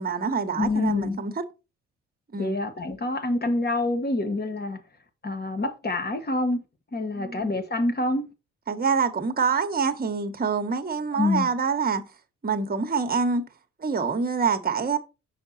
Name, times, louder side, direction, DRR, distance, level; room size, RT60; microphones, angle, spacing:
voice 1, 0.0-1.3 2.3-2.6 7.1-7.5 8.7-12.0 12.4-13.5 13.8-15.0, right 5 dB, 30° right, 1.4 m, -26 dB
voice 2, 0.6-1.2 2.4-4.8 5.2-6.6 6.9-8.2 11.1-11.5, left 2 dB, 30° left, 1.7 m, -26 dB
6.4 x 5.9 x 4.2 m
cardioid pair, 90°, 30 cm